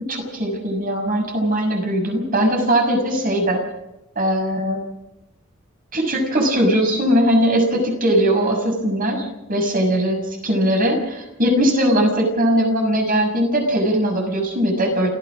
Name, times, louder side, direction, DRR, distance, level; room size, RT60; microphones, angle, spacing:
voice 1, 0.1-3.6 4.2-4.8 5.9-15.1, equal, 45° right, 3 dB, 6.4 m, -20 dB
28.5 x 15.0 x 6.3 m, 0.93 s
head